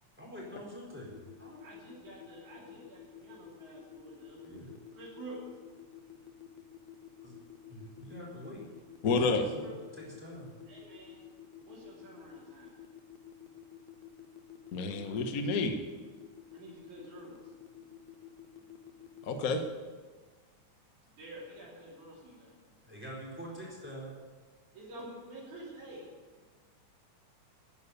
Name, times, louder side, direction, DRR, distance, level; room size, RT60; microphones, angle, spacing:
voice 1, 0.2-1.7 4.4-4.7 7.2-7.4 7.7-8.7 9.3-9.7 10.0-10.5 22.8-24.1, equal, 5° right, -3 dB, 3.8 m, -45 dB
sound 1, 1.1-19.5, left 10 dB, 70° left, 2.2 m, -50 dB
voice 2, 1.6-4.5 4.9-5.4 9.4-9.7 10.7-11.2 11.6-12.8 16.5-17.4 17.8-17.9 21.1-22.6 24.7-26.1, right 2 dB, 75° right, -6 dB, 4.7 m, -49 dB
voice 3, 9.0-9.4 14.7-15.8 19.2-19.6, left 3 dB, 85° left, 6 dB, 0.7 m, -29 dB
12.5 x 9.7 x 8.1 m, 1.4 s
omnidirectional pair, 3.4 m